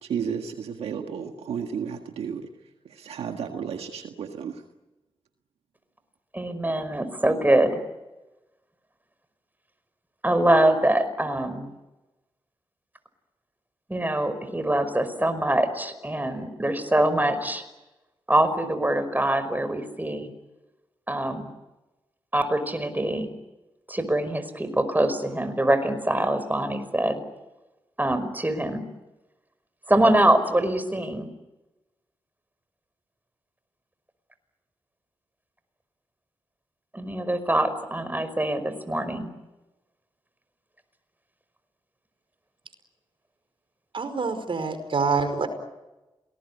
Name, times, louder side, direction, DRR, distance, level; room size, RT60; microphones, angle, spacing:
voice 1, 0.0-2.5 2.9-4.6, right 7 dB, 90° right, 5 dB, 1.7 m, -32 dB
voice 2, 6.3-7.8 10.2-11.7 13.9-17.6 18.3-20.3 21.1-21.5 22.3-23.3 23.9-27.2 28.0-28.8 29.9-31.3 36.9-39.3, right 1 dB, 20° right, 11 dB, 5.3 m, -24 dB
voice 3, 43.9-45.5, right 4 dB, 60° right, 9 dB, 4.9 m, -26 dB
27.5 x 20.0 x 9.8 m, 1.1 s
supercardioid pair, 40°, 10 cm